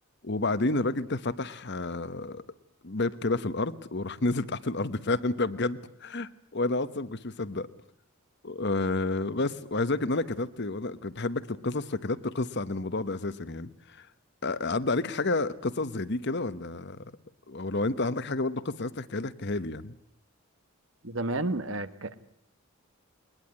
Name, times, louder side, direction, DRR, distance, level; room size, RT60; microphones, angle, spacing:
voice 1, 0.2-2.4 2.8-7.7 8.4-14.1 14.4-17.0 17.5-19.9, left 2 dB, 55° left, 14 dB, 1.1 m, -30 dB
voice 2, 21.0-22.1, right 2 dB, 65° right, 12 dB, 1.4 m, -31 dB
21.5 x 20.5 x 9.6 m, 0.70 s
head